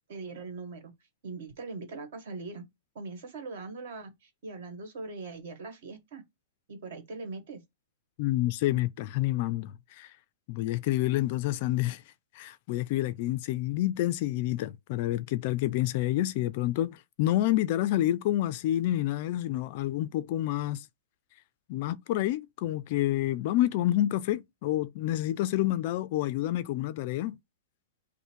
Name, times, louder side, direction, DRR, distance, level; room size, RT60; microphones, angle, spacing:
voice 1, 0.1-0.9 1.2-2.6 2.9-6.2 6.7-7.6, right 3 dB, 50° right, 1.7 m, -41 dB
voice 2, 8.2-10.1 10.5-12.0 12.3-20.9 21.7-27.4, left 14 dB, 35° left, 0.3 m, -28 dB
5.5 x 2.1 x 4.5 m
hypercardioid pair, 170°, 0 cm